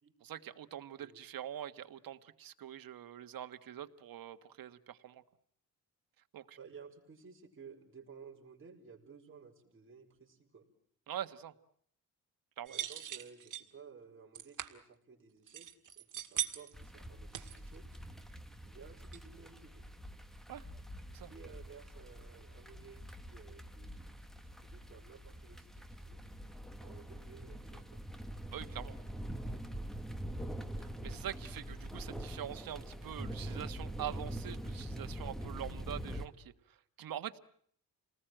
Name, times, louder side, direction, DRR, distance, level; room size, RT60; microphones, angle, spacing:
voice 1, 0.2-5.2 6.3-6.6 11.1-11.5 12.6-12.7 20.5-20.6 21.1-21.3 28.5-29.0 30.8-37.4, right 11 dB, 75° right, 10 dB, 1.5 m, -44 dB
voice 2, 6.6-10.6 12.7-15.7 16.0-17.8 18.6-19.8 21.3-24.2 24.4-26.2 26.8-28.0, right 6 dB, 35° right, 0 dB, 4.4 m, -55 dB
sound 1, 12.7-13.7 14.3-14.7 15.5-16.8 17.3-17.9 18.3-18.4 18.8-18.9 19.1-19.2, right 11 dB, 60° right, 2.0 m, -40 dB
sound 2, 16.7-36.3, right 1 dB, ahead, 1.6 m, -44 dB
29.0 x 19.5 x 9.0 m, 0.63 s
wide cardioid pair, 145°, 35 cm